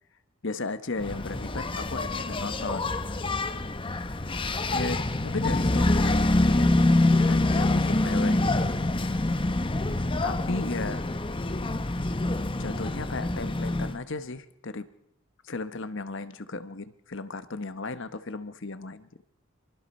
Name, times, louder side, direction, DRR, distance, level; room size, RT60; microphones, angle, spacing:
voice 1, 0.4-3.0 4.7-9.5 10.2-11.0 12.6-14.9 15.4-19.2, left 3 dB, 55° left, 13 dB, 1.0 m, -36 dB
Engine, 1.0-14.0, left 2 dB, 25° left, 0.8 m, -26 dB
25.5 x 24.5 x 4.3 m, 0.76 s
head